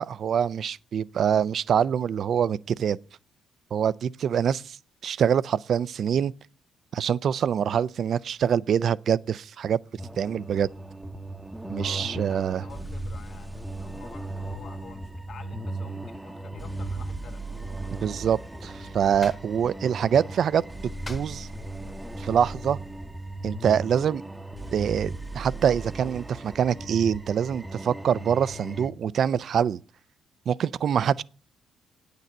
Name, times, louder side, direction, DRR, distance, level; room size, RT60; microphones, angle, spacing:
voice 1, 0.0-3.0 3.7-4.8 5.0-6.3 6.9-9.8 10.2-10.7 11.7-12.6 18.0-20.6 21.1-21.5 22.2-22.8 23.4-24.2 24.7-29.8 30.5-31.2, right 8 dB, 60° right, 0.4 m, -25 dB
sound 1, 10.0-28.9, right 2 dB, 5° right, 0.8 m, -37 dB
voice 2, 11.8-17.6, left 5 dB, 60° left, 1.4 m, -48 dB
sound 2, 18.1-23.4, left 2 dB, 20° left, 1.5 m, -48 dB
9.0 x 6.7 x 8.5 m
cardioid pair, 90°, 0 cm